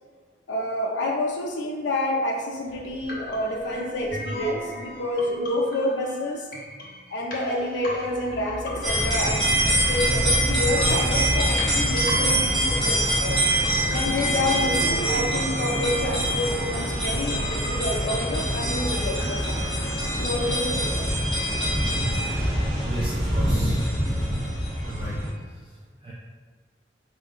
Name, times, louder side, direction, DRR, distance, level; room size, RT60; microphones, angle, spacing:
voice 1, 0.5-6.5 7.1-13.4 13.8-19.6 20.1-21.1, left 1 dB, 80° left, 0 dB, 0.5 m, -28 dB
sound 1, 2.7-20.7, equal, 50° left, 0.8 m, -38 dB
sound 2, 8.8-25.3, equal, ahead, 1.4 m, -24 dB
voice 2, 22.8-24.0 24.8-26.1, equal, 25° right, -6 dB, 0.4 m, -35 dB
4.5 x 2.2 x 3.7 m, 1.5 s
head